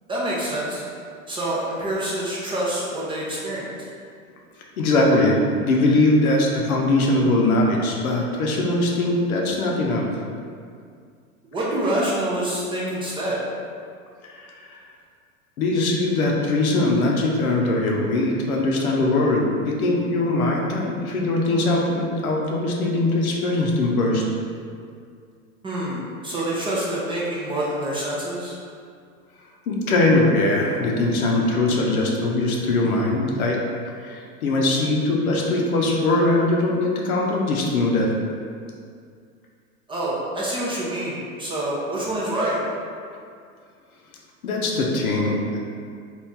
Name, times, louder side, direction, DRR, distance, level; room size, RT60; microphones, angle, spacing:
voice 1, 0.1-0.8 1.3-3.9 11.5-13.4 25.6-28.6 39.9-42.6, right 1 dB, 15° right, -7 dB, 0.4 m, -26 dB
voice 2, 4.8-10.0 14.2-14.7 15.6-24.2 29.7-33.6 34.0-38.1 44.4-45.6, left 2 dB, 80° left, -1 dB, 0.7 m, -21 dB
3.0 x 2.5 x 3.6 m, 2.2 s
hypercardioid pair, 100°, 42 cm